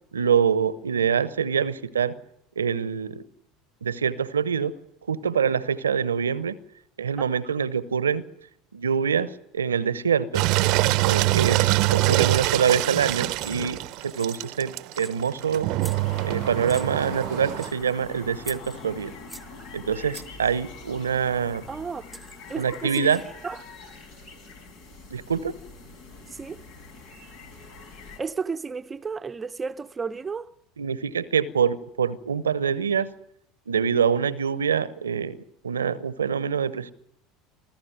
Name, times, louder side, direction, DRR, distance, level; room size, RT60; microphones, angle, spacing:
voice 1, 0.1-2.2 2.6-3.2 3.8-4.8 5.1-6.6 7.0-8.2 8.7-10.5 11.0-15.7 16.2-19.1 19.7-21.7 22.6-23.2 25.1-25.5 30.8-33.1 33.7-35.4 35.6-36.9, right 7 dB, 85° right, 0.9 m, -25 dB
Engine, 10.3-17.7, right 19 dB, 60° right, 0.8 m, -24 dB
sound 1, 13.4-13.7 14.0-14.6 14.9-15.4 15.8-16.3 16.7-17.2 17.6-17.9 18.4-19.6 20.1-20.4 21.7-21.8 22.1-23.4, right 1 dB, ahead, 1.4 m, -44 dB
sound 2, 15.9-28.2, left 3 dB, 65° left, 5.0 m, -43 dB
voice 2, 21.7-22.0 22.5-23.1 23.4-23.6 26.3-26.6 28.2-30.5, right 5 dB, 20° right, 0.8 m, -32 dB
25.5 x 14.0 x 9.5 m
figure-of-eight pair, 70°, 0 cm